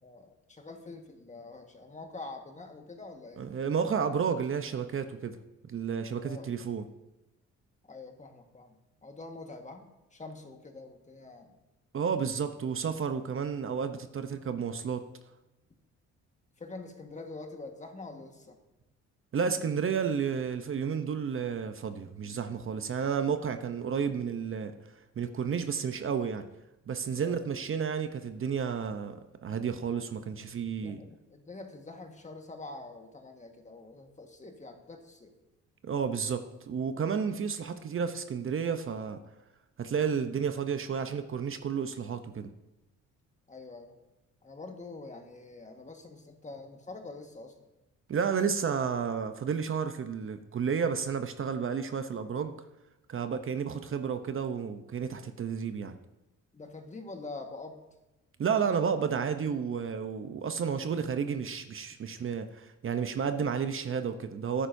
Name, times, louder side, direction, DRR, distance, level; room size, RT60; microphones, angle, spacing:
voice 1, 0.0-3.4 6.2-6.7 7.9-8.7 9.0-11.6 16.6-18.6 27.2-27.4 30.8-35.3 43.5-43.9 44.4-47.5 56.5-57.9, left 3 dB, 25° left, 4 dB, 1.5 m, -45 dB
voice 2, 3.4-5.4 5.6-6.8 11.9-15.0 19.3-24.7 25.2-26.4 26.9-31.0 35.8-39.2 39.8-42.5 48.1-52.5 53.1-55.9 58.4-64.7, right 6 dB, 45° right, 8 dB, 0.8 m, -31 dB
13.0 x 10.0 x 2.7 m, 0.98 s
cardioid pair, 90°, 30 cm